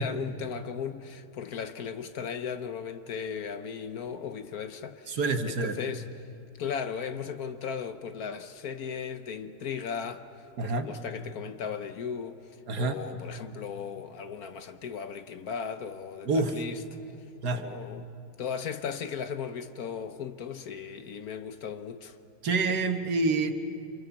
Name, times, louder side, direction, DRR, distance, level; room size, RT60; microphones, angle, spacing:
voice 1, 0.0-5.2 5.5-6.1 6.6-10.2 10.6-12.4 12.8-16.8 17.5-18.1 18.4-22.2, left 7 dB, 60° left, 1.3 m, -36 dB
voice 2, 5.1-5.8 10.6-10.9 12.7-13.0 16.3-16.5 17.4-17.6 22.4-23.5, right 3 dB, 65° right, 1.8 m, -27 dB
29.0 x 27.0 x 7.1 m
omnidirectional pair, 1.9 m